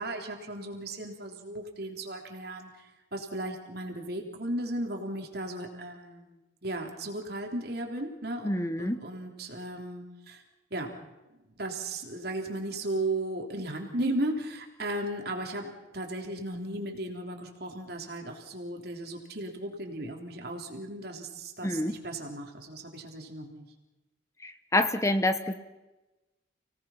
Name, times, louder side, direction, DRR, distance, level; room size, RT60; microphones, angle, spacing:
voice 1, 0.0-8.5 8.8-10.4 10.7-10.9 11.4-23.6, right 1 dB, 55° right, 2 dB, 3.5 m, -36 dB
voice 2, 8.4-9.0 21.6-22.0 24.4-25.5, left 1 dB, 15° left, 10 dB, 0.9 m, -27 dB
30.0 x 18.5 x 5.8 m, 1.1 s
head